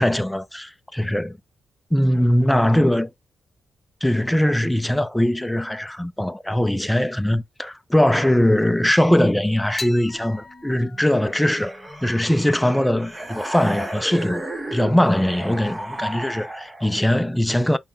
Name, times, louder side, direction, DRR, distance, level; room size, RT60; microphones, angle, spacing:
voice 1, 0.0-1.4 1.9-3.1 4.0-17.8, left 1 dB, 5° left, 0.4 m, -21 dB
sound 1, 9.7-16.3, left 3 dB, 25° left, 1.1 m, -43 dB
sound 2, 11.2-17.0, right 1 dB, 15° right, 0.8 m, -33 dB
5.6 x 2.1 x 3.6 m
wide cardioid pair, 125°, 0 cm